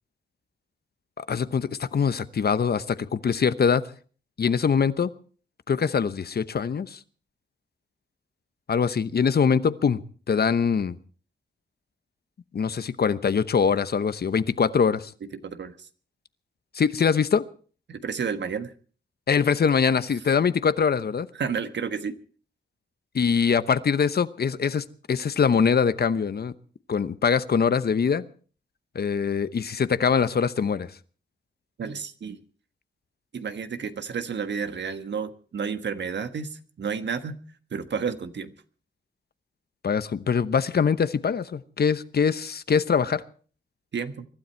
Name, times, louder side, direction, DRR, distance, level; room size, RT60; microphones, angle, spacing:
voice 1, 1.2-3.8 4.4-5.1 5.7-7.0 8.7-10.0 10.3-11.0 12.5-15.1 16.7-17.4 19.3-21.3 23.1-26.5 26.9-28.2 28.9-30.9 39.8-43.2, left 6 dB, 55° left, 14 dB, 0.9 m, -23 dB
voice 2, 15.4-15.9 17.9-18.7 21.3-22.2 31.8-32.4 33.3-37.4 37.7-38.5 43.9-44.3, right 6 dB, 70° right, 9 dB, 1.4 m, -31 dB
23.5 x 12.5 x 4.5 m, 0.41 s
cardioid pair, 80°, 19 cm